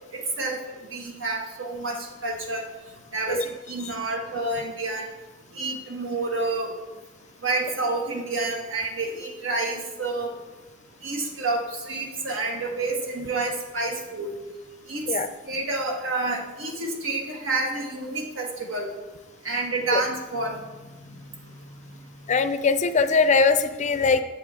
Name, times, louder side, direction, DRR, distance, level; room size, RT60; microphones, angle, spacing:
voice 1, 0.1-0.6 0.9-2.6 3.1-5.1 5.5-6.7 7.4-10.3 11.0-14.3 14.9-15.1 15.4-18.9 19.4-20.6 21.1-21.8, right 2 dB, 85° right, 1 dB, 1.5 m, -29 dB
voice 2, 22.3-24.2, left 4 dB, 35° left, 10 dB, 0.4 m, -21 dB
7.9 x 7.6 x 3.5 m, 1.2 s
head